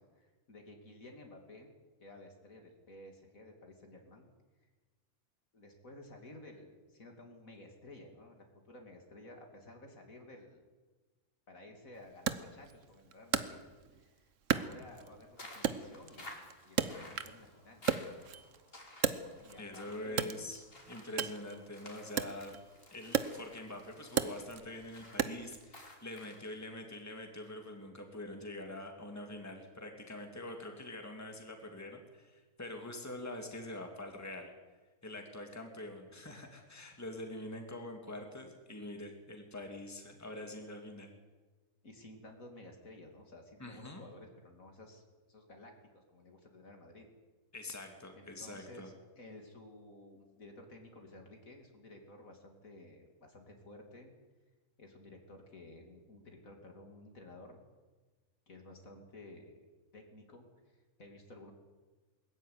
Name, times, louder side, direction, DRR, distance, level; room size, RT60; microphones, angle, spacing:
voice 1, 0.0-1.7 2.0-4.3 5.5-10.6 11.5-13.6 13.9-18.0 19.4-20.3 35.8-36.1 41.8-45.0 45.3-47.1 48.1-54.1 54.8-57.6 58.5-59.6 59.9-61.5, left 1 dB, 60° left, 3 dB, 3.1 m, -54 dB
Wood, 12.3-14.0 14.5-15.3 15.6-17.5 17.7-19.7 20.1-25.6, right 8 dB, 55° right, 1.2 m, -36 dB
sound 1, 15.4-26.6, left 1 dB, 35° left, 3.4 m, -55 dB
voice 2, 19.6-22.5 22.9-34.5 35.0-41.1 43.6-44.0 47.5-48.9, left 1 dB, 10° left, 3 dB, 2.4 m, -45 dB
20.5 x 14.0 x 9.6 m, 1.3 s
omnidirectional pair, 1.6 m